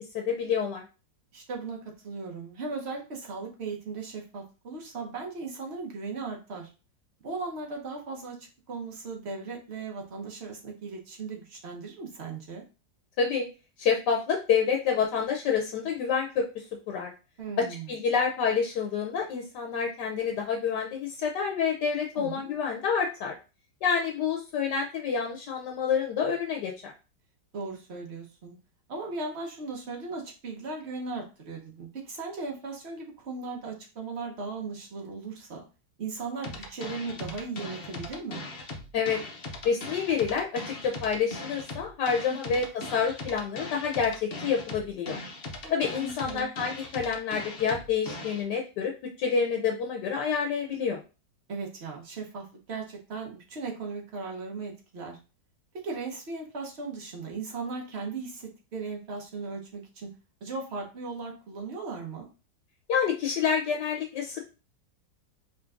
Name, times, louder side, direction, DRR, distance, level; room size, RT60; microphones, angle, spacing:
voice 1, 0.1-0.8 13.2-13.4 13.8-17.1 17.6-23.3 23.8-26.9 38.9-39.2 39.6-42.6 42.9-45.2 45.7-48.9 49.2-51.0 62.9-64.4, left 6 dB, 75° left, 1 dB, 1.3 m, -28 dB
voice 2, 1.3-6.7 7.2-12.6 17.4-17.9 22.1-22.5 27.5-28.6 28.9-35.7 36.0-38.4 42.3-42.6 45.6-46.5 51.5-55.2 55.8-60.1 60.4-62.3, right 4 dB, 45° right, 0 dB, 1.1 m, -37 dB
sound 1, 36.4-48.4, left 2 dB, 50° left, 0.7 m, -39 dB
5.0 x 3.1 x 2.5 m, 0.32 s
omnidirectional pair, 1.9 m